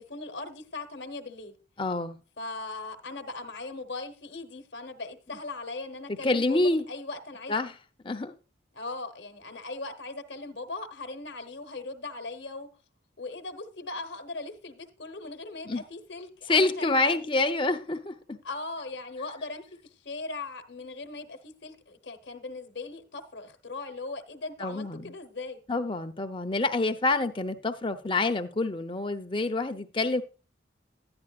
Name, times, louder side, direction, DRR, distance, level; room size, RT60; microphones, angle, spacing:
voice 1, 0.0-1.5 2.4-6.6 6.9-7.7 8.7-12.7 13.2-17.2 18.4-19.7 20.0-25.6, left 3 dB, 65° left, 1.1 m, -39 dB
voice 2, 1.8-2.2 6.2-6.8 7.5-7.7 8.0-8.3 15.7-15.8 16.5-18.4 24.6-25.1 25.7-30.2, left 2 dB, 25° left, 0.7 m, -27 dB
11.5 x 9.7 x 2.4 m
head